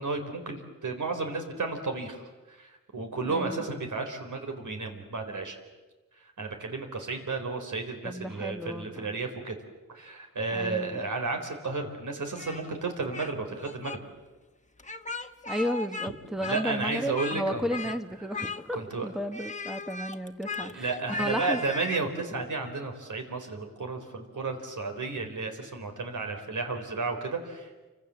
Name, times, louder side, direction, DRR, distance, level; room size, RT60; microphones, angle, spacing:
voice 1, 0.0-5.6 6.4-9.6 9.9-14.0 16.4-17.9 18.7-19.1 20.6-27.9, right 3 dB, 85° right, 4 dB, 4.2 m, -33 dB
voice 2, 3.2-3.7 8.0-9.1 10.5-11.0 15.5-18.8 19.0-21.6, equal, ahead, 9 dB, 1.0 m, -33 dB
Speech, 12.4-13.3 13.6-14.0 14.8-16.1 16.4-17.4 17.7-18.0 18.3-18.9 19.3-22.1, left 3 dB, 25° left, 1.2 m, -37 dB
29.0 x 25.5 x 7.7 m, 1.2 s
wide cardioid pair, 120°, 30 cm